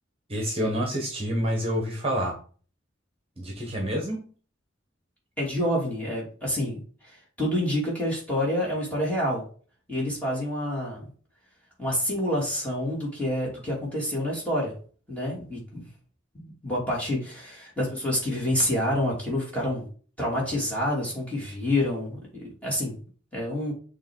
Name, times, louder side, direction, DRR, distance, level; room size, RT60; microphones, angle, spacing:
voice 1, 0.3-2.4 3.4-4.2, equal, 30° right, 1 dB, 1.2 m, -28 dB
voice 2, 5.4-6.8 7.0-9.4 9.9-11.1 11.8-14.7 15.1-15.9 16.3-19.9 20.2-23.0 23.3-23.7, left 1 dB, 5° left, -5 dB, 2.7 m, -28 dB
6.7 x 3.2 x 4.6 m, 0.41 s
head